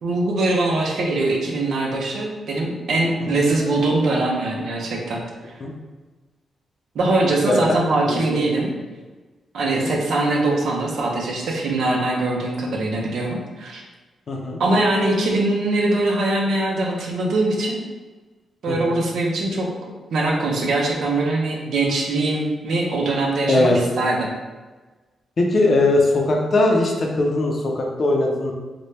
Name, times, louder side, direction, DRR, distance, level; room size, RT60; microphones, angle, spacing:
voice 1, 0.0-5.2 5.5-5.6 6.9-8.7 9.5-13.8 14.6-17.8 18.6-19.7 20.1-24.3, right 2 dB, 65° right, -1 dB, 0.7 m, -22 dB
voice 2, 14.3-14.6 18.7-18.9 23.5-23.8 25.4-28.5, left 2 dB, 35° left, 0 dB, 0.5 m, -20 dB
4.0 x 2.2 x 3.3 m, 1.3 s
wide cardioid pair, 175°, 0 cm